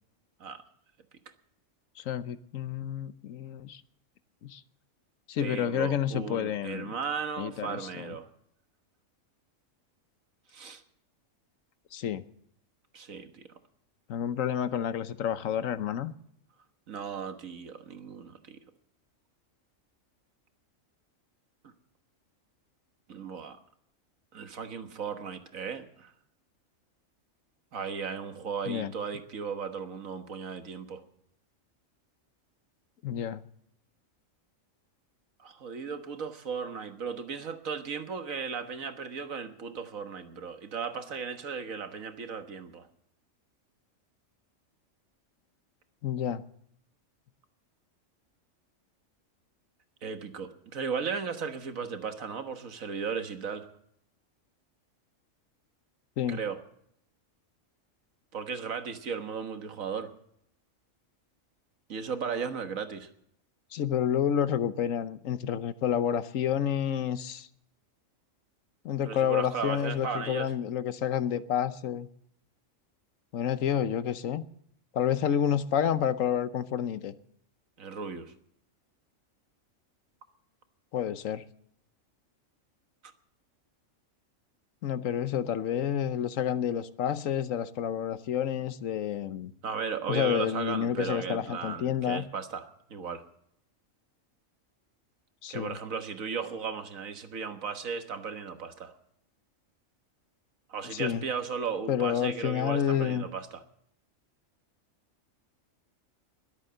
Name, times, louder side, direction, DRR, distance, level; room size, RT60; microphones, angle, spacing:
voice 1, 2.0-3.8 4.4-4.6 5.3-6.9 7.4-8.1 11.9-12.2 14.1-16.1 28.7-28.9 33.0-33.4 46.0-46.4 56.2-56.4 63.7-67.5 68.8-72.1 73.3-74.4 74.9-77.1 80.9-81.4 84.8-89.5 90.1-92.3 95.4-95.8 100.9-101.2 101.9-103.3, left 9 dB, 75° left, 13 dB, 1.2 m, -29 dB
voice 2, 5.4-8.3 10.5-10.8 12.9-13.5 16.9-18.6 21.6-21.7 23.1-23.6 24.3-26.1 27.7-31.0 35.4-42.9 50.0-53.7 56.3-56.6 58.3-60.1 61.9-63.1 69.1-70.5 77.8-78.3 89.6-93.2 95.5-98.9 100.7-103.6, right 6 dB, 80° right, 8 dB, 1.8 m, -36 dB
21.5 x 8.2 x 6.6 m, 0.71 s
omnidirectional pair, 1.4 m